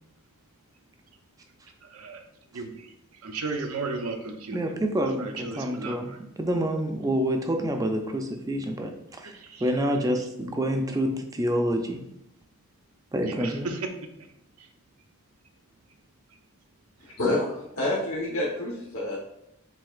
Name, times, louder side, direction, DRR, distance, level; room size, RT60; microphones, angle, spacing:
voice 1, 3.2-4.6 5.0-6.2 9.5-9.6 13.2-13.8, right 3 dB, 90° right, 4 dB, 0.6 m, -34 dB
voice 2, 4.5-12.0 13.1-13.7, equal, 15° right, 4 dB, 0.4 m, -28 dB
voice 3, 17.2-19.2, left 2 dB, 75° left, -7 dB, 1.1 m, -28 dB
7.3 x 2.8 x 2.4 m, 0.81 s
head